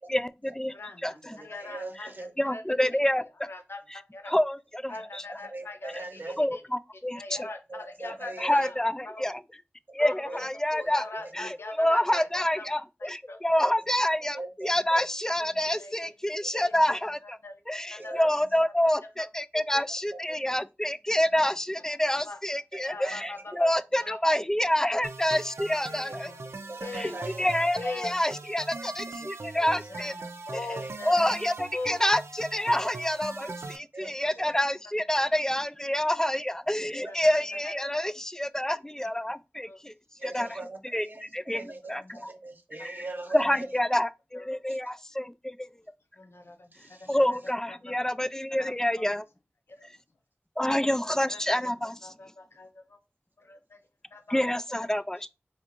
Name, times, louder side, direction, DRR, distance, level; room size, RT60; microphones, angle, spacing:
voice 1, 0.1-0.7 1.0-1.4 2.4-3.5 3.9-4.0 4.3-5.4 6.4-6.6 7.0-7.5 8.4-9.4 9.9-11.0 11.3-17.4 17.7-26.3 26.9-30.1 30.5-30.6 31.0-39.9 40.2-40.5 40.9-42.0 42.8-43.0 43.3-45.7 47.1-49.2 50.6-52.1 54.3-55.3, left 1 dB, 10° left, 0.3 m, -27 dB
voice 2, 0.7-2.1 2.5-2.9 3.5-3.8 4.1-4.3 4.9-6.0 6.5-6.6 7.1-8.8 9.1-9.2 10.0-12.7 13.0-13.4 15.4-16.1 16.5-16.6 17.4-17.6 17.9-18.3 19.5-19.8 21.9-22.0 22.3-22.4 22.9-23.5 24.0-24.2 25.9-26.4 26.8-27.1 27.8-28.1 29.6-31.2 31.7-32.0 33.4-33.5 34.4-34.5 37.1-37.2 37.6-38.0 39.7-39.8 41.9-42.2 44.3-44.4 46.2-46.7 47.0-47.4 49.8-49.9 51.3-51.6 52.0-53.0 53.4-53.8 54.1-54.4, left 2 dB, 65° left, 0.7 m, -41 dB
voice 3, 1.2-2.3 4.9-5.0 5.4-6.4 7.7-8.7 10.3-10.4 10.8-10.9 11.2-11.5 12.1-12.2 13.6-13.7 14.2-15.1 16.4-16.8 18.0-18.2 19.9-20.5 22.7-23.8 26.4-27.5 28.8-28.9 29.2-29.3 30.6-31.1 33.9-34.6 36.5-36.6 36.9-37.6 40.2-43.7 44.7-44.8 46.7-47.2, right 2 dB, 50° right, 0.8 m, -42 dB
sound 1, 25.0-33.8, right 3 dB, 90° right, 0.5 m, -40 dB
4.3 x 2.5 x 2.9 m
wide cardioid pair, 50°, 4 cm